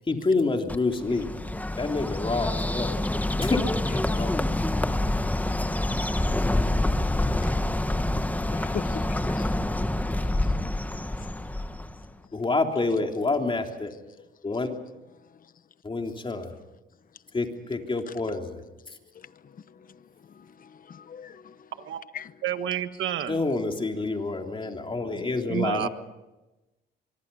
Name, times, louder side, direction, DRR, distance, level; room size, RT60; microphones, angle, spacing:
voice 1, 0.1-1.3 1.8-2.9 3.4-3.6 3.9-4.4 12.3-13.9 14.4-14.7 15.8-16.5 17.3-18.6 18.9-19.0 23.3-25.9, left 3 dB, 25° left, 3.4 m, -27 dB
Bird, 0.7-12.1, left 1 dB, 10° left, 1.2 m, -27 dB
voice 2, 8.5-9.5 10.2-10.3 11.2-11.3 19.1-20.0 20.3-21.7 22.1-22.3 25.0-25.3 25.8-25.9, left 7 dB, 45° left, 1.0 m, -41 dB
voice 3, 22.4-23.4 25.5-25.9, right 10 dB, 75° right, 1.7 m, -29 dB
24.5 x 24.0 x 5.6 m
cardioid pair, 90°, 20 cm